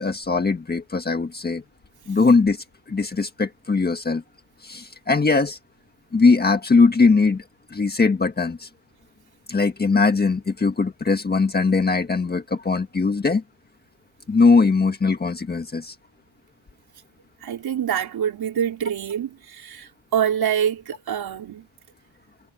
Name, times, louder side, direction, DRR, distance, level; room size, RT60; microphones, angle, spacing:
voice 1, 0.0-1.6 2.1-2.6 2.9-4.2 4.6-5.6 6.1-7.4 7.7-8.7 9.5-13.4 14.3-15.9, left 4 dB, 20° left, 1.6 m, -20 dB
voice 2, 17.4-21.7, right 9 dB, 45° right, 4.4 m, -25 dB
cardioid pair, 155°, 49 cm